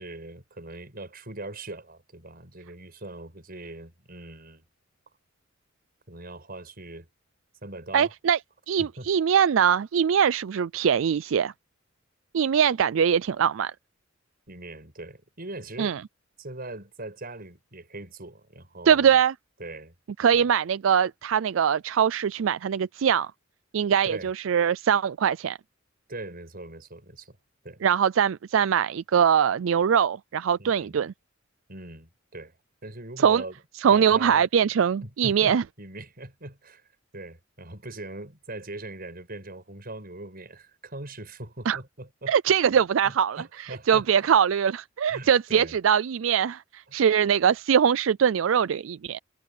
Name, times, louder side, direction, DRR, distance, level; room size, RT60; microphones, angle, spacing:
voice 1, 0.0-4.6 6.1-7.1 7.6-8.1 8.8-9.1 14.5-16.0 16.4-19.2 19.6-19.9 20.3-20.5 24.0-24.3 26.1-27.4 27.6-27.8 30.6-31.1 31.7-32.5 32.8-33.6 33.9-34.5 35.0-36.8 37.1-42.4 43.0-44.4 45.1-45.8 46.9-47.0, right 2 dB, 50° right, 6.5 m, -41 dB
voice 2, 7.9-8.4 8.7-11.5 12.3-13.7 15.8-16.0 18.9-19.3 20.2-23.3 23.7-25.6 27.8-31.1 33.2-33.4 33.8-35.6 41.7-41.8 42.3-49.2, right 8 dB, 80° right, 0.4 m, -22 dB
head